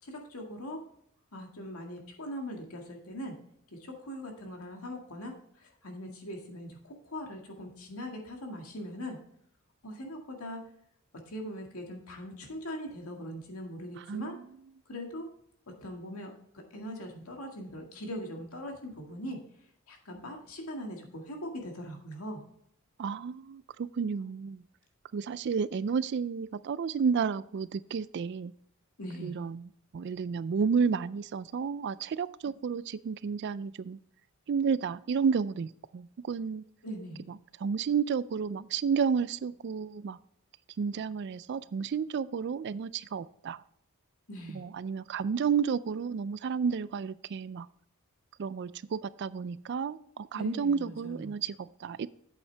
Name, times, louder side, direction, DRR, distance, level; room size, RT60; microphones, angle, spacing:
voice 1, 0.0-0.8 1.3-3.3 3.7-9.2 9.8-10.6 11.3-14.3 14.9-15.3 15.8-19.4 19.9-22.4 29.0-29.4 36.8-37.3 44.3-44.6 50.3-51.3, equal, 80° left, 2 dB, 2.0 m, -41 dB
voice 2, 14.0-14.4 23.0-24.6 25.1-28.5 29.2-34.0 34.5-36.6 37.3-40.2 40.8-43.6 44.5-47.7 48.4-52.1, right 6 dB, 50° right, 18 dB, 0.3 m, -31 dB
8.5 x 8.2 x 3.3 m, 0.70 s
head